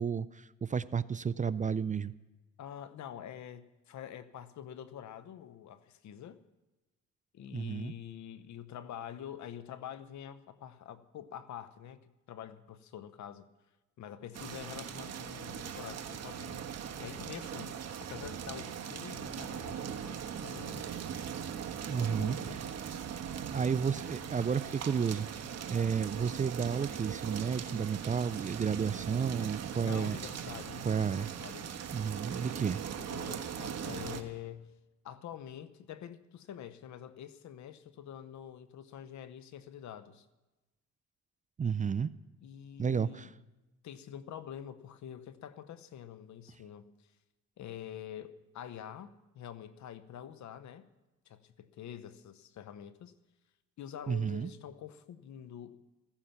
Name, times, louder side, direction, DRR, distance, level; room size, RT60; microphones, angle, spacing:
voice 1, 0.0-2.1 7.5-7.9 21.9-22.4 23.5-25.3 25.7-30.2 30.8-31.3 31.9-32.8 41.6-42.1 42.8-43.3 54.1-54.5, right 6 dB, 25° right, 0.4 m, -32 dB
voice 2, 2.6-6.4 7.3-13.5 14.0-16.7 17.0-21.0 21.8-22.6 29.8-31.7 33.0-34.7 35.0-40.3 42.4-43.3 43.8-46.9 47.6-50.9 51.3-53.1 53.8-55.8, left 10 dB, 70° left, 1.0 m, -46 dB
sound 1, 14.3-34.2, right 8 dB, 60° right, 1.3 m, -40 dB
15.0 x 14.5 x 5.8 m
cardioid pair, 90°, 30 cm